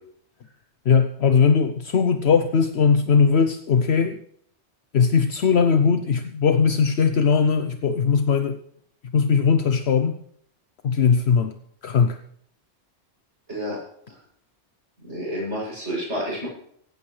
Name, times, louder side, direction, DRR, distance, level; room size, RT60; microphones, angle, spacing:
voice 1, 0.9-4.2 4.9-8.6 9.1-10.2 10.8-11.5 11.8-12.2, left 6 dB, 70° left, 8 dB, 1.0 m, -19 dB
voice 2, 15.0-16.5, equal, 90° right, -5 dB, 8.5 m, -29 dB
17.5 x 16.0 x 3.3 m, 0.65 s
omnidirectional pair, 1.2 m